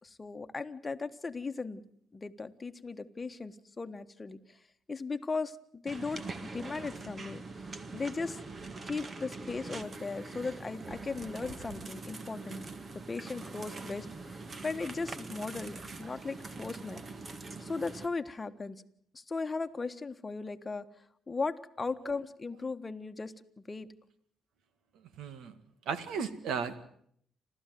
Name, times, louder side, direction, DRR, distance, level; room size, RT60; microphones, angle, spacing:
voice 1, 0.0-1.8 2.1-4.6 4.9-7.4 7.9-8.4 8.8-12.7 12.9-17.1 17.6-18.8 19.1-20.8 21.3-23.3 23.7-23.9, left 4 dB, 25° left, 8 dB, 1.4 m, -37 dB
sound 1, 5.9-18.1, right 3 dB, 35° right, 1.8 m, -43 dB
voice 2, 25.2-25.5 25.9-26.8, right 6 dB, 80° right, 13 dB, 2.0 m, -35 dB
29.0 x 13.5 x 9.3 m, 0.67 s
cardioid pair, 90°, 0 cm